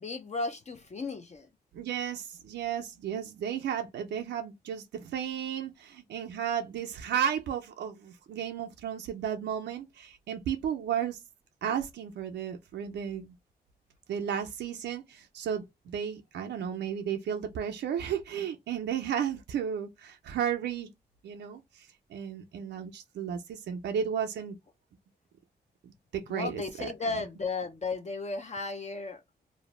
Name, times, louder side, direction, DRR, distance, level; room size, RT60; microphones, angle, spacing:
voice 1, 0.0-1.5 26.3-29.2, left 3 dB, 40° left, 0.5 m, -34 dB
voice 2, 1.7-11.2 11.6-13.3 14.1-20.9 21.2-21.9 22.1-24.6 25.8-26.9, right 8 dB, 90° right, 0.4 m, -33 dB
2.5 x 2.0 x 3.0 m
cardioid pair, 50°, 17 cm